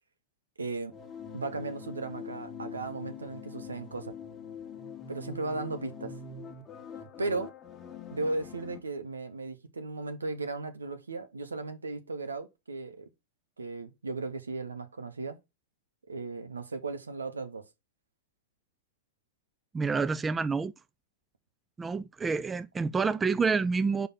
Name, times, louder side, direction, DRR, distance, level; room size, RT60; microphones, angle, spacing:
voice 1, 0.6-1.0 1.3-4.1 5.1-6.1 7.2-7.5 8.1-13.1 13.6-15.4 16.1-17.6, right 3 dB, 85° right, 1.1 m, -36 dB
sound 1, 0.9-8.8, left 6 dB, 20° left, 1.3 m, -44 dB
voice 2, 19.7-20.7 21.8-24.1, right 4 dB, 15° right, 0.4 m, -28 dB
5.2 x 4.7 x 5.8 m
figure-of-eight pair, 100°, 0 cm